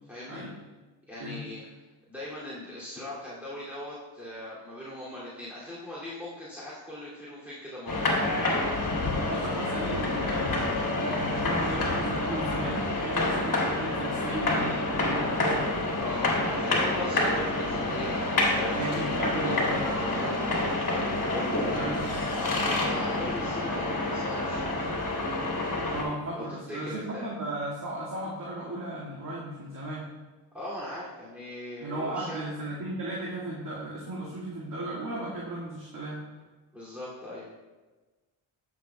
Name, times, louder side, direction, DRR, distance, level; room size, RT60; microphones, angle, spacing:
voice 1, 0.1-0.4 1.1-1.6 2.1-8.0 16.0-20.6 20.9-22.0 22.3-24.9 26.3-27.3 30.5-32.5 36.7-37.5, left 1 dB, 5° right, -9 dB, 2.6 m, -39 dB
sound 1, 7.9-26.0, left 2 dB, 40° left, 2.5 m, -28 dB
voice 2, 9.0-15.7 18.7-19.8 20.4-20.5 21.6-22.2 25.9-30.1 31.8-36.2, right 1 dB, 40° right, -7 dB, 2.1 m, -36 dB
11.5 x 7.2 x 2.3 m, 1.2 s
cardioid pair, 70°, 48 cm